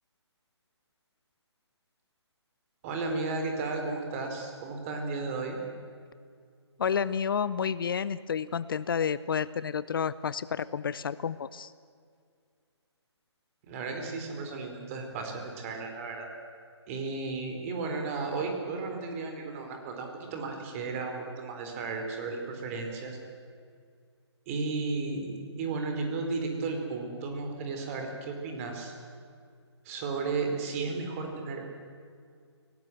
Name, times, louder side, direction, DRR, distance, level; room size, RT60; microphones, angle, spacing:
voice 1, 2.8-5.6 13.6-16.3 16.9-23.2 24.5-28.9 29.8-31.7, right 3 dB, 30° right, 3 dB, 4.3 m, -34 dB
voice 2, 6.8-11.7, left 7 dB, 50° left, 17 dB, 0.6 m, -30 dB
23.5 x 18.5 x 7.8 m, 2.2 s
figure-of-eight pair, 140°, 15 cm